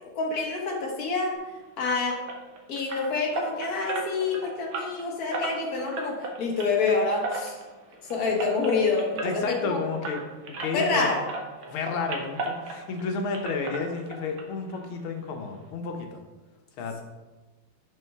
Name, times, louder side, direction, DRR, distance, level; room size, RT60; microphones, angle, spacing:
voice 1, 0.0-1.4 1.8-2.2 2.7-7.6 8.0-9.8 10.7-11.2, left 4 dB, 50° left, 0 dB, 1.4 m, -27 dB
sound 1, 1.9-11.0 11.3-13.1 13.3-14.4 14.7-14.8 15.3-15.4 15.7-15.8, right 2 dB, 75° right, 1.7 m, -36 dB
voice 2, 9.2-11.1 11.6-16.2 16.8-17.0, left 4 dB, 80° left, 4 dB, 1.7 m, -31 dB
6.2 x 5.4 x 3.4 m, 1.2 s
omnidirectional pair, 2.3 m